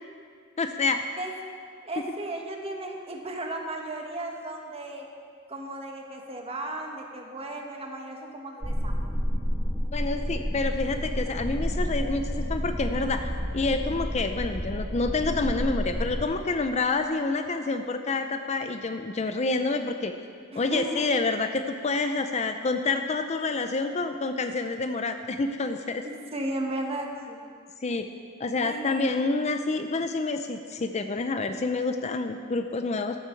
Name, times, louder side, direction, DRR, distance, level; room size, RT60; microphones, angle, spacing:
voice 1, 0.6-1.0 9.9-13.3 13.5-20.1 20.5-26.0 27.8-28.1 28.4-33.2, left 3 dB, 30° left, 7 dB, 0.5 m, -28 dB
voice 2, 1.8-5.1 5.5-9.2 20.5-20.9 26.0-27.4 28.6-28.8, right 2 dB, 30° right, 1 dB, 1.5 m, -35 dB
sound 1, 8.6-16.2, equal, 10° left, 1.6 m, -30 dB
14.5 x 12.5 x 4.6 m, 2.3 s
head